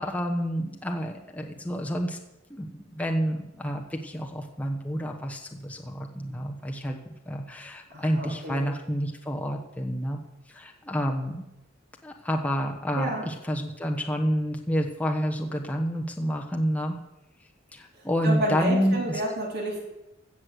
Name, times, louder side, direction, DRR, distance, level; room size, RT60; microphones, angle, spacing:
voice 1, 0.0-2.2 2.5-10.2 10.5-11.4 12.0-17.0 17.7-19.2, equal, 5° left, 1 dB, 1.1 m, -29 dB
voice 2, 7.9-8.7 12.9-13.3 18.2-19.8, right 1 dB, 50° right, -1 dB, 2.9 m, -30 dB
16.0 x 6.5 x 7.9 m, 0.94 s
head